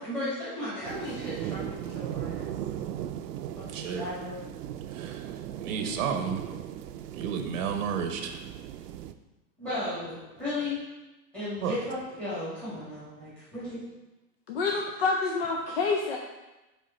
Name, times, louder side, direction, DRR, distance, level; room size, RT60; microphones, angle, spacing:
voice 1, 0.0-2.5 3.5-4.4 9.6-10.8 11.3-13.8, left 2 dB, 5° left, -12 dB, 2.4 m, -35 dB
sound 1, 0.8-9.1, right 11 dB, 80° right, 0.6 m, -37 dB
voice 2, 3.6-4.1 4.9-5.3 5.6-6.5 7.1-8.4 11.6-11.8, right 7 dB, 55° right, 6 dB, 0.8 m, -32 dB
voice 3, 14.5-16.2, left 4 dB, 40° left, 0 dB, 0.4 m, -27 dB
7.7 x 3.7 x 4.2 m, 1.1 s
supercardioid pair, 175°, 48 cm